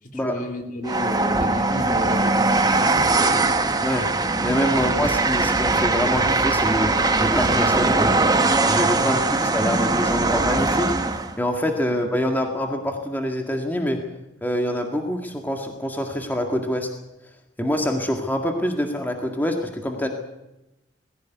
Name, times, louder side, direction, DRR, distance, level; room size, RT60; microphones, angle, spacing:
voice 1, 0.0-3.7 9.0-9.5 11.9-12.0, left 1 dB, 50° left, 4 dB, 3.2 m, -34 dB
Train, 0.8-11.3, right 3 dB, 20° right, 1.4 m, -21 dB
voice 2, 4.4-8.1 8.7-14.0 14.4-16.9 17.6-20.1, equal, 10° left, 3 dB, 1.9 m, -25 dB
21.0 x 16.0 x 9.4 m, 0.95 s
head